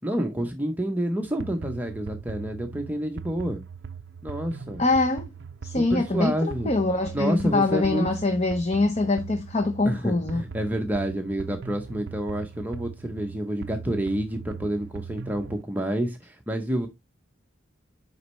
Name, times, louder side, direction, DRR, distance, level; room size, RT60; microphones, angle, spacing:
voice 1, 0.0-3.6 4.2-4.8 5.6-6.7 7.1-8.1 9.9-16.9, right 1 dB, 10° right, 0.6 m, -28 dB
sound 1, 1.4-15.6, right 6 dB, 55° right, 0.4 m, -40 dB
voice 2, 4.8-5.3 5.6-10.4, left 3 dB, 30° left, 0.7 m, -24 dB
8.2 x 5.3 x 3.1 m
head